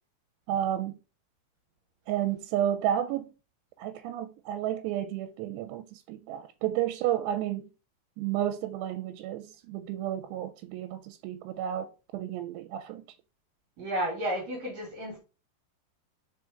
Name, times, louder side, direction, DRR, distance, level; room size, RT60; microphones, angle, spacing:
voice 1, 0.5-1.0 2.1-3.3 3.8-7.7 8.2-13.0, right 11 dB, 90° right, 2.7 m, -32 dB
voice 2, 13.8-15.2, right 1 dB, 50° right, 2.6 m, -32 dB
5.2 x 4.8 x 3.8 m
omnidirectional pair, 4.8 m